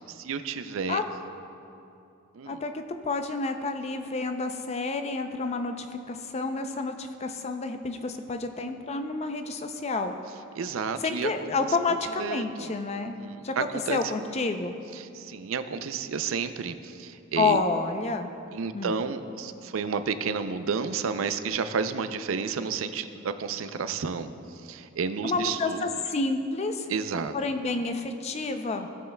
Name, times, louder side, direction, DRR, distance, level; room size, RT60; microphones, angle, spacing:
voice 1, 0.1-1.0 2.3-2.6 10.6-11.3 12.2-12.7 13.0-14.0 14.3-14.4 14.9-17.6 18.5-24.3 24.6-25.8 26.9-27.3, right 5 dB, 85° right, 10 dB, 0.5 m, -31 dB
voice 2, 2.5-10.1 11.0-13.2 13.4-14.8 17.4-18.3 18.7-18.9 25.2-26.9 27.3-28.9, left 3 dB, 30° left, 7 dB, 0.4 m, -29 dB
16.5 x 6.9 x 2.2 m, 2.7 s
head